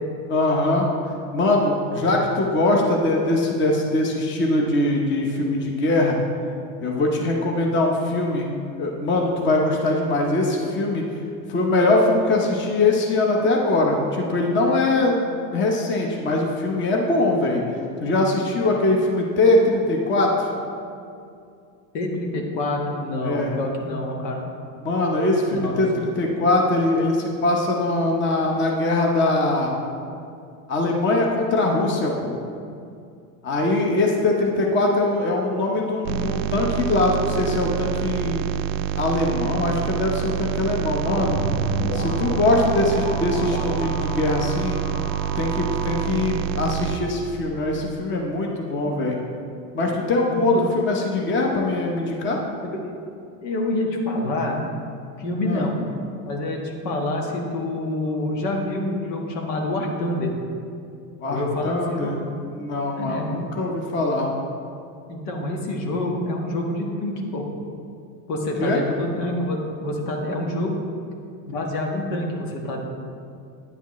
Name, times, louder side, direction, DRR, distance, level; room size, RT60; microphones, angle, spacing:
voice 1, 0.3-0.9 1.3-6.2 6.8-8.5 8.8-11.0 11.5-17.6 18.0-20.5 23.2-23.5 24.8-29.7 30.7-32.4 33.4-38.5 39.0-41.6 41.9-44.8 45.4-49.2 49.7-52.4 55.4-55.7 61.2-62.2 62.5-64.3 68.6-68.8, left 2 dB, 25° left, 0 dB, 0.9 m, -22 dB
voice 2, 21.9-24.4 25.5-25.8 50.3-50.6 52.2-52.3 53.4-54.7 55.2-55.8 56.3-60.3 61.3-62.2 62.9-63.3 65.1-67.5 68.3-70.8 71.5-72.8, left 1 dB, 75° left, 0 dB, 1.6 m, -27 dB
sound 1, 36.1-47.0, right 10 dB, 85° right, 0.6 m, -27 dB
sound 2, 41.0-46.0, right 1 dB, 55° left, 1.5 m, -30 dB
9.4 x 8.0 x 3.1 m, 2.5 s
supercardioid pair, 125°, 50 cm